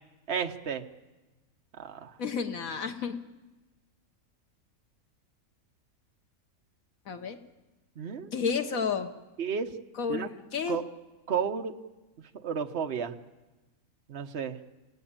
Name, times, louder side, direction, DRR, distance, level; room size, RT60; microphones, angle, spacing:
voice 1, 0.3-0.9 1.8-2.1 8.0-8.3 9.4-9.7 10.1-10.3 10.7-10.8 11.3-11.8 12.4-13.1 14.1-14.6, right 7 dB, 50° right, 6 dB, 1.3 m, -32 dB
voice 2, 2.2-3.1 7.1-7.4 8.3-9.1 10.0-10.8, left 6 dB, 75° left, 7 dB, 1.5 m, -31 dB
26.5 x 17.5 x 8.8 m, 1.2 s
omnidirectional pair, 1.5 m